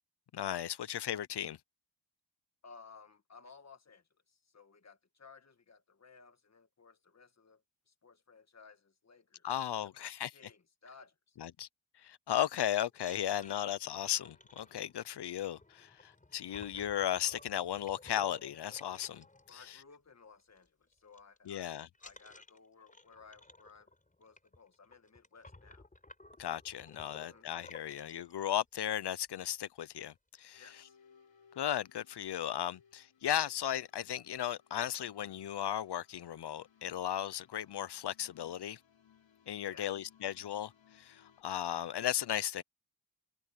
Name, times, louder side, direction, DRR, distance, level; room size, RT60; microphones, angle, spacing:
voice 1, 0.3-1.6 9.4-10.3 11.4-11.7 12.0-19.2 19.5-19.8 21.5-21.9 26.4-30.6 31.6-38.8 39.5-42.6, left 11 dB, 65° left, 0.7 m, -36 dB
voice 2, 2.6-9.5 9.8-11.4 19.5-21.7 22.0-23.9 24.2-25.9 27.1-27.5 30.6-31.0 39.7-40.1, left 5 dB, 35° left, 1.8 m, -58 dB
sound 1, 12.9-20.1 20.4-20.7 20.9-21.5 21.9-28.3 29.0-29.1 29.4-29.6 29.8-30.4, left 2 dB, 20° left, 5.1 m, -57 dB
sound 2, 30.5-41.4, left 7 dB, 80° left, 4.4 m, -66 dB
wide cardioid pair, 160°, 44 cm